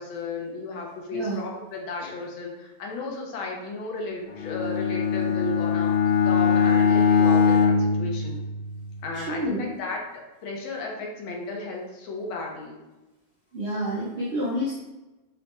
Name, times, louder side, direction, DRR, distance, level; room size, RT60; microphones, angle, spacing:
voice 1, 0.0-6.0 6.2-8.4 9.0-12.8, left 3 dB, 90° left, 0 dB, 1.6 m, -34 dB
voice 2, 1.1-1.4 5.2-5.4 9.1-9.7 13.5-14.7, equal, 75° right, -5 dB, 0.6 m, -29 dB
Bowed string instrument, 4.3-8.9, left 6 dB, 70° left, 1.0 m, -22 dB
5.5 x 2.1 x 3.0 m, 1.1 s
omnidirectional pair, 2.1 m